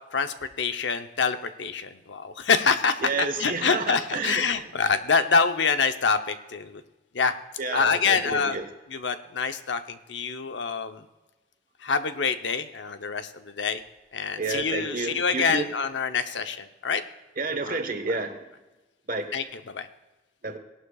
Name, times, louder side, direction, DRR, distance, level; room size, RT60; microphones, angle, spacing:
voice 1, 0.1-3.0 3.4-6.8 7.1-7.3 7.7-8.6 8.9-11.0 11.8-13.8 14.1-17.0 17.7-17.8 18.1-18.2 19.3-19.9, left 5 dB, 75° left, 9 dB, 0.8 m, -26 dB
voice 2, 3.0-4.4 7.6-8.7 14.4-15.7 17.4-18.4 19.1-19.3 20.4-20.6, right 3 dB, 50° right, 6 dB, 1.2 m, -30 dB
18.0 x 11.5 x 2.4 m, 1.1 s
head